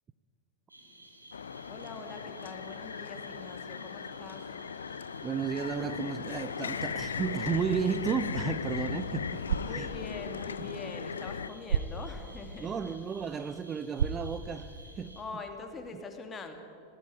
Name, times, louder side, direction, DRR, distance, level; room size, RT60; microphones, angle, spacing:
sound 1, 0.7-15.2, right 1 dB, 85° right, 3.0 m, -54 dB
sound 2, 1.3-11.5, left 6 dB, 70° left, 0.8 m, -37 dB
voice 1, 1.7-4.4 9.6-12.7 15.2-16.5, left 4 dB, 20° left, 5 dB, 2.6 m, -43 dB
voice 2, 5.2-9.9 10.6-10.7 12.6-15.1, right 6 dB, 20° right, 12 dB, 0.7 m, -33 dB
sound 3, 9.3-15.3, right 7 dB, 65° right, 0.9 m, -37 dB
20.0 x 16.0 x 9.3 m, 2.7 s
figure-of-eight pair, 90°, 0 cm